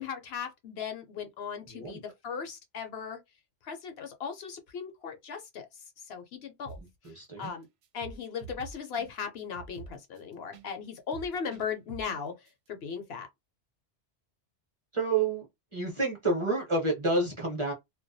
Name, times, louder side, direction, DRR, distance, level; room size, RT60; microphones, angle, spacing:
voice 1, 0.0-3.2 3.6-5.7 6.1-6.8 7.4-7.7 7.9-13.3, left 6 dB, 65° left, 0.8 m, -37 dB
voice 2, 1.7-2.0 7.0-7.5 14.9-15.5 15.7-17.7, right 3 dB, 30° right, 0.7 m, -29 dB
sound 1, 6.6-7.1 7.4-7.6 7.8-10.7 10.9-12.2 12.5-12.6, right 5 dB, 65° right, 0.8 m, -46 dB
2.3 x 2.2 x 2.5 m
omnidirectional pair, 1.2 m